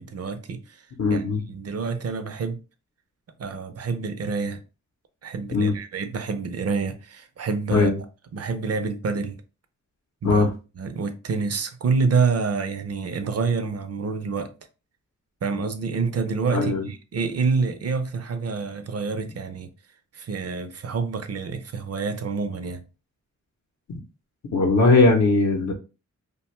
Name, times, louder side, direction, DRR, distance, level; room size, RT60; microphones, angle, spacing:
voice 1, 0.0-1.2 1.5-2.6 3.4-4.6 5.2-7.9 8.3-9.4 10.2-10.4 10.8-14.5 15.4-19.7 20.1-22.8, right 4 dB, 50° right, 0.5 m, -27 dB
voice 2, 1.0-1.4 5.5-5.7 7.7-8.0 10.2-10.5 16.5-16.9 24.5-25.7, left 3 dB, 60° left, 0.6 m, -19 dB
2.5 x 2.2 x 3.0 m
cardioid pair, 70°, 31 cm